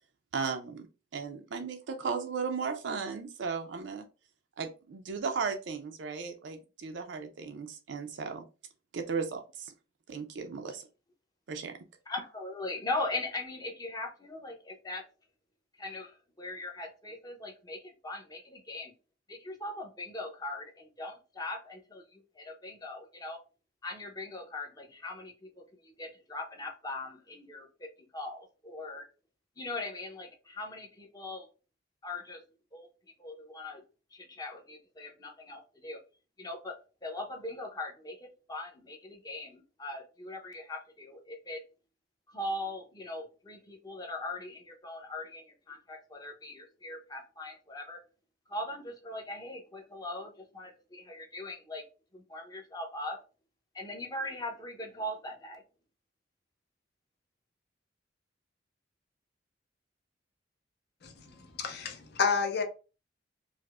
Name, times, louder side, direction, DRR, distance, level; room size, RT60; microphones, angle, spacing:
voice 1, 0.3-0.9 1.1-4.1 4.6-8.4 8.9-9.7 10.1-10.9 11.5-11.8, right 5 dB, 70° right, 0.4 m, -36 dB
voice 2, 12.1-15.0 15.8-18.9 19.3-23.4 23.8-27.9 28.1-29.0 29.6-31.5 32.0-32.4 32.7-32.9 33.2-33.8 34.1-36.0 36.4-36.8 37.0-41.6 42.3-48.0 48.5-51.8 52.1-53.2 53.7-55.6, left 2 dB, 20° left, 0.7 m, -40 dB
voice 3, 61.6-62.6, left 5 dB, 60° left, 0.7 m, -29 dB
4.8 x 2.0 x 2.3 m
head